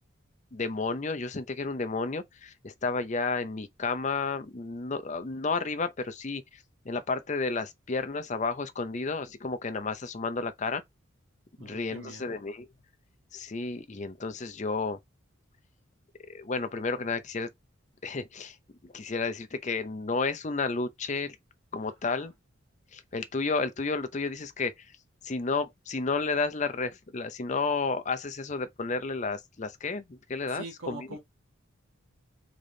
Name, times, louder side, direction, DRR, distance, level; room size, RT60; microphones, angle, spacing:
voice 1, 0.5-10.8 11.6-12.7 13.3-15.0 16.3-17.5 18.0-18.6 18.8-21.4 21.7-22.3 22.9-24.9 25.2-31.2, left 4 dB, 35° left, 0.6 m, -32 dB
voice 2, 11.6-12.4 22.1-22.3 30.5-31.2, right 2 dB, 80° right, 1.5 m, -43 dB
3.8 x 3.4 x 3.8 m
head